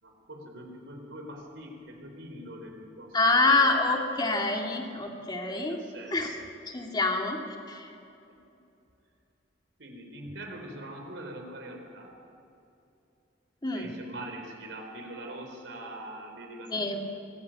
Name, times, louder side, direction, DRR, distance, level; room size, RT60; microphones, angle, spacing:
voice 1, 0.0-3.8 5.5-6.4 8.3-8.4 9.8-12.2 13.7-16.8, right 1 dB, 80° right, 3 dB, 3.9 m, -43 dB
voice 2, 3.1-5.8 6.1-6.4 6.7-7.9 13.6-13.9 16.7-17.0, left 3 dB, 25° left, 2 dB, 2.2 m, -26 dB
24.5 x 14.5 x 8.9 m, 2.7 s
head